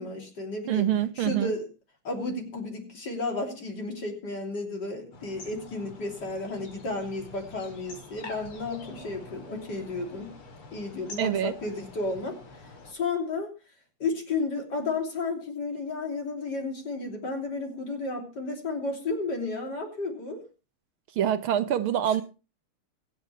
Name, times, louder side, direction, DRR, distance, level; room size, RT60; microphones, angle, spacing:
voice 1, 0.0-0.9 1.2-1.7 2.0-10.3 10.7-12.4 12.9-13.5 14.0-20.4, left 3 dB, 50° left, 3.7 m, -32 dB
voice 2, 0.7-1.5 11.2-11.5 21.2-22.2, right 10 dB, 75° right, 1.7 m, -25 dB
sound 1, 5.1-12.9, left 2 dB, 80° left, 3.4 m, -46 dB
24.5 x 8.1 x 3.3 m
omnidirectional pair, 2.4 m